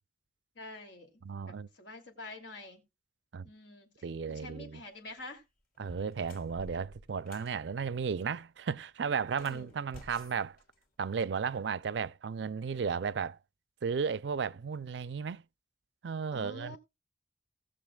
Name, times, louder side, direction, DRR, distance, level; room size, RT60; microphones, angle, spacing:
voice 1, 0.5-1.1 1.7-2.8 3.4-3.9 4.3-5.4 9.4-9.8 16.3-16.8, left 2 dB, 85° left, 2.7 m, -46 dB
voice 2, 1.2-1.7 3.3-3.5 4.0-4.8 5.8-10.6 11.0-13.4 13.8-15.4 16.0-16.8, right 6 dB, 70° right, 0.4 m, -34 dB
sound 1, 5.0-5.2 5.7-7.6 9.2-11.3, left 1 dB, 50° left, 2.9 m, -53 dB
19.0 x 6.7 x 2.3 m
head